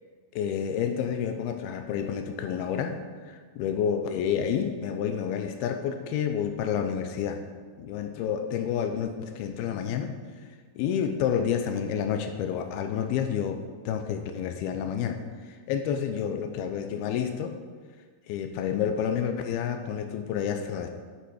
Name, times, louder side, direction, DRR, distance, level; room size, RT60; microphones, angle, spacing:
voice 1, 0.3-7.4 7.8-10.2 10.8-13.6 13.9-15.2 15.5-17.5 18.3-20.9, left 8 dB, 90° left, 6 dB, 2.6 m, -29 dB
8.9 x 8.3 x 6.3 m, 1.5 s
omnidirectional pair, 4.5 m